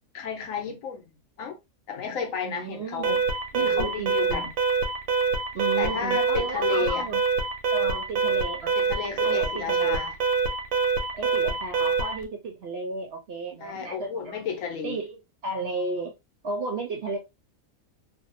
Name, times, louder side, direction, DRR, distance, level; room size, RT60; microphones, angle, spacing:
voice 1, 0.1-1.1 1.4-1.6 1.9-3.2 3.6-4.5 5.8-7.1 8.8-10.2 13.6-15.0, left 6 dB, 70° left, 0.9 m, -32 dB
voice 2, 2.4-3.2 3.5-4.5 5.5-7.2 7.7-8.7 9.2-10.0 11.1-14.4 14.8-16.1 16.4-17.2, right 3 dB, 60° right, 0.7 m, -33 dB
Alarm, 3.0-12.2, right 5 dB, 90° right, 1.1 m, -25 dB
2.6 x 2.1 x 2.5 m
omnidirectional pair, 1.5 m